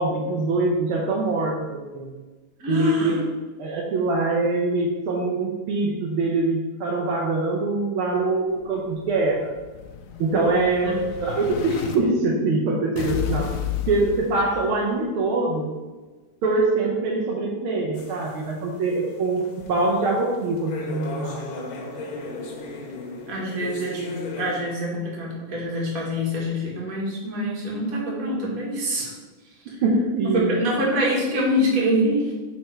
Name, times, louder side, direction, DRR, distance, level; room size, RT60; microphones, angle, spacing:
voice 1, 0.0-2.1 2.7-3.2 3.6-9.5 10.2-13.6 13.9-15.7 16.4-19.4 19.7-21.4 29.8-30.5, right 2 dB, 85° right, -1 dB, 1.2 m, -23 dB
voice 2, 2.6-3.2 10.8-10.9 23.3-24.0 24.4-29.1 29.7-29.8 30.2-32.3, equal, 40° right, -4 dB, 1.4 m, -25 dB
Explosion, 8.6-12.0 13.0-15.0, left 10 dB, 90° left, 2.0 m, -32 dB
sound 1, 17.9-24.6, left 2 dB, 70° left, 2.1 m, -36 dB
5.4 x 4.3 x 4.4 m, 1.2 s
omnidirectional pair, 3.4 m